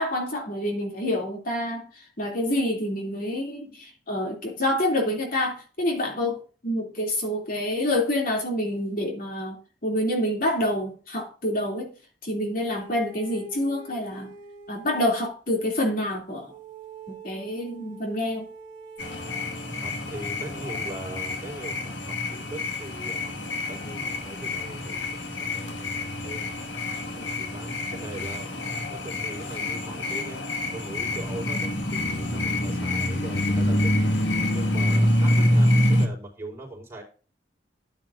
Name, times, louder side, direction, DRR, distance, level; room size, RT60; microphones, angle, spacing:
voice 1, 0.0-11.9 12.2-14.3 14.7-16.5 17.1-18.5, left 1 dB, 50° left, 2.9 m, -27 dB
sound 1, 12.7-15.3 16.5-19.8, right 3 dB, 45° right, 2.2 m, -45 dB
sound 2, 19.0-36.1, left 1 dB, 85° left, 2.0 m, -26 dB
voice 2, 19.8-26.5 27.2-28.5 28.9-37.0, right 2 dB, 15° right, 4.4 m, -41 dB
14.0 x 9.3 x 2.6 m
head